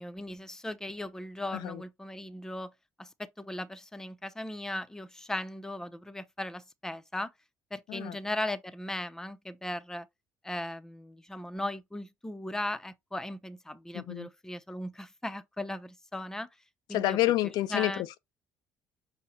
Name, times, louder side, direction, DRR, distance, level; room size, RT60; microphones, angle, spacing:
voice 1, 0.0-2.7 3.0-7.3 7.7-10.1 10.4-16.5 16.9-17.2 17.7-18.0, left 1 dB, 5° left, 0.5 m, -37 dB
voice 2, 13.9-14.3 16.9-18.2, left 15 dB, 70° left, 0.3 m, -29 dB
5.6 x 2.1 x 4.1 m
supercardioid pair, 70°, 7 cm